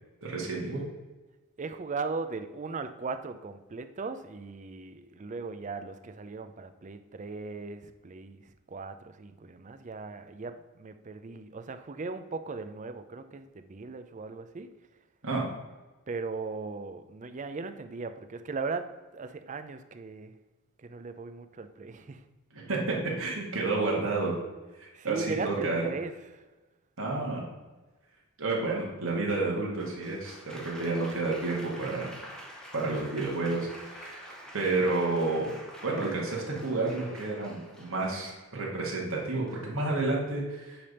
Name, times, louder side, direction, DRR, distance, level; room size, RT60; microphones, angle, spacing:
voice 1, 0.2-0.8 15.2-15.4 22.5-24.4 24.8-25.9 27.0-27.4 28.4-30.4 30.6-32.1 32.7-34.3 34.5-40.8, right 3 dB, 65° right, -3 dB, 1.7 m, -30 dB
voice 2, 1.6-14.7 16.1-20.4 20.8-22.2 24.9-26.5, right 4 dB, 35° right, 9 dB, 0.4 m, -38 dB
Applause, 29.8-38.6 39.5-39.9, equal, 5° left, 0.8 m, -47 dB
8.7 x 3.4 x 5.3 m, 1.2 s
head